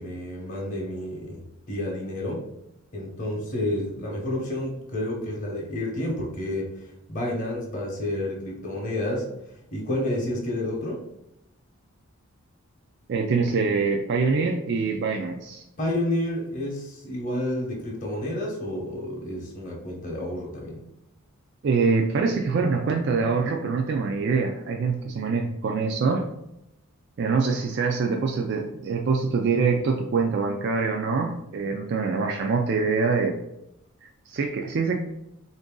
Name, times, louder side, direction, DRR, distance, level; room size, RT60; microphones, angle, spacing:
voice 1, 0.0-1.4 1.7-2.5 2.9-9.3 9.7-11.0 15.8-20.8, left 1 dB, 35° left, -2 dB, 0.8 m, -30 dB
voice 2, 13.1-15.6 21.6-26.3 27.2-33.4 34.0-35.0, right 4 dB, 50° right, 2 dB, 0.3 m, -24 dB
3.8 x 2.6 x 3.6 m, 0.84 s
head